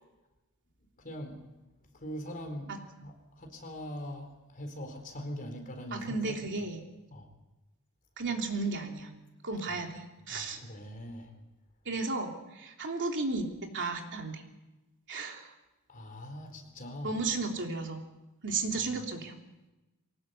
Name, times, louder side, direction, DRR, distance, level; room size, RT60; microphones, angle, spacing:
voice 1, 1.0-1.4 1.9-2.7 3.0-6.3 7.1-7.3 9.7-9.8 10.3-11.4 15.9-17.2, equal, 40° left, 4 dB, 4.4 m, -42 dB
voice 2, 5.9-6.8 8.2-9.1 9.4-10.6 11.9-13.5 13.7-14.4 15.1-15.5 17.0-18.0 18.4-19.3, right 3 dB, 55° right, 2 dB, 3.4 m, -34 dB
23.5 x 19.0 x 8.4 m, 1.0 s
head